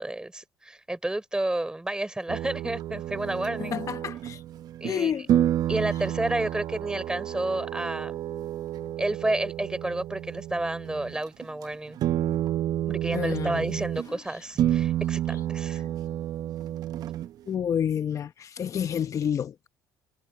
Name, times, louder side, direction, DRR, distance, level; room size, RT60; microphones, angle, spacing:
voice 1, 0.0-3.8 4.8-5.2 5.7-8.1 9.0-12.0 12.9-15.8, right 1 dB, 10° right, 4.3 m, -31 dB
sound 1, 2.3-5.0 5.3-11.2 11.4-11.6 12.0-14.1 14.6-17.5, right 12 dB, 60° right, 0.8 m, -30 dB
voice 2, 3.6-4.4 4.8-5.3 13.1-13.8 14.1-14.4 17.5-19.7, left 8 dB, 45° left, 0.9 m, -29 dB
supercardioid pair, 75°, 7 cm